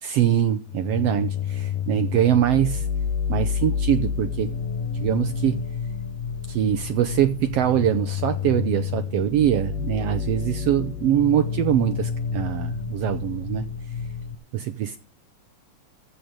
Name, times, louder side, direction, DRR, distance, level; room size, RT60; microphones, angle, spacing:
voice 1, 0.0-2.8 3.3-4.5 4.9-5.6 6.5-13.7 14.5-15.0, right 11 dB, 85° right, 10 dB, 1.4 m, -23 dB
sound 1, 0.7-14.4, left 7 dB, 85° left, 2.5 m, -29 dB
15.0 x 5.2 x 7.7 m, 0.36 s
omnidirectional pair, 3.7 m